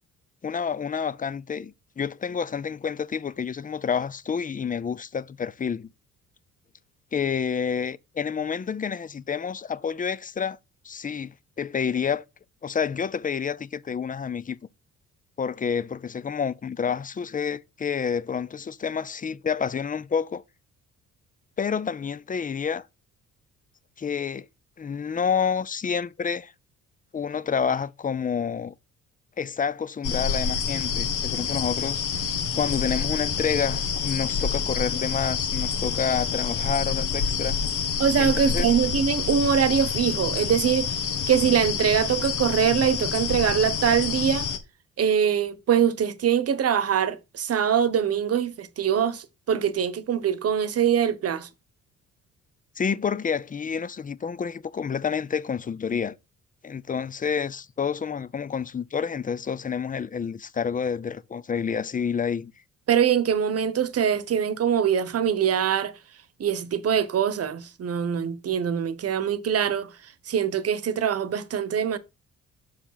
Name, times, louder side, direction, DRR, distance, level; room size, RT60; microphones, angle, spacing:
voice 1, 0.4-5.9 7.1-10.6 10.8-12.2 12.6-14.6 15.4-20.4 21.6-22.9 24.0-24.5 24.8-26.5 27.1-28.7 29.4-37.6 38.2-38.7 52.8-56.1 56.6-62.5, left 6 dB, 25° left, 0.6 m, -29 dB
sound 1, 30.0-44.6, left 6 dB, 80° left, 1.6 m, -28 dB
voice 2, 38.0-41.0 41.3-44.5 45.0-51.5 62.9-66.0 66.4-69.9 70.3-72.0, right 8 dB, 50° right, 1.1 m, -23 dB
6.8 x 4.9 x 5.7 m
cardioid pair, 90°, 30 cm